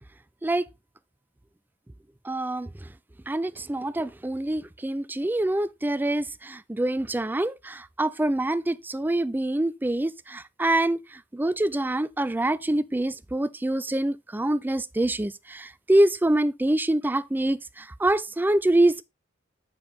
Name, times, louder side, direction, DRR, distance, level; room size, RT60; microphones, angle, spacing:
voice 1, 2.3-2.7 3.3-11.0 11.3-19.0, right 1 dB, 10° right, 0.3 m, -25 dB
7.2 x 6.8 x 3.5 m
head